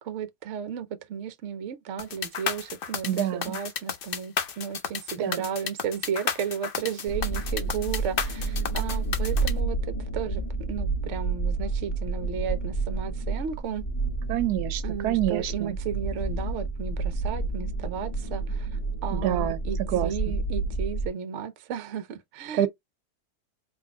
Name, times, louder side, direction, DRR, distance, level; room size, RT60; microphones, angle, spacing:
voice 1, 0.0-10.4 10.7-13.8 14.8-18.7 19.0-22.7, right 8 dB, 60° right, 0.9 m, -34 dB
sound 1, 2.0-9.5, left 7 dB, 80° left, 0.4 m, -32 dB
voice 2, 3.0-3.6 5.2-5.4 14.3-15.8 19.1-20.3 22.5-22.7, right 12 dB, 80° right, 1.1 m, -27 dB
sound 2, 7.1-21.1, right 3 dB, 25° left, 1.2 m, -30 dB
3.9 x 2.7 x 3.5 m
omnidirectional pair, 1.7 m